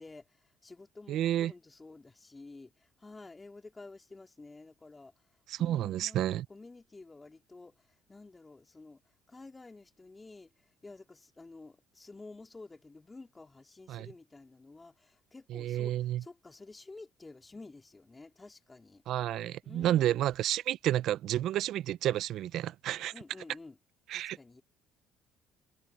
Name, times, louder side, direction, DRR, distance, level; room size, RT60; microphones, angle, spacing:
voice 1, 0.0-5.3 5.6-9.0 9.3-19.0 19.6-20.2 23.1-23.8 24.1-24.6, left 3 dB, 20° left, 3.4 m, -51 dB
voice 2, 1.1-1.5 5.5-6.4 13.9-14.1 15.5-16.2 19.1-23.1 24.1-24.6, right 12 dB, 65° right, 0.6 m, -31 dB
supercardioid pair, 90°, 0 cm